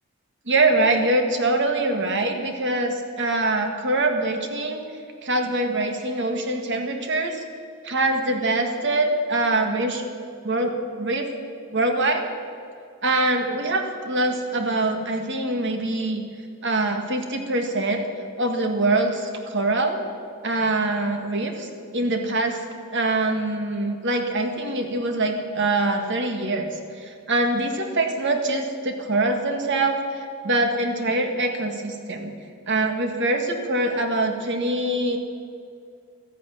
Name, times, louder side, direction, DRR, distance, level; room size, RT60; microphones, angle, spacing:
voice 1, 0.5-4.8 5.2-7.4 7.8-10.0 10.4-11.3 11.7-12.2 13.0-16.2 16.6-18.0 18.4-20.0 20.4-22.6 22.9-32.3 32.7-35.2, right 2 dB, 55° right, 5 dB, 1.8 m, -24 dB
14.0 x 10.0 x 9.1 m, 2.4 s
head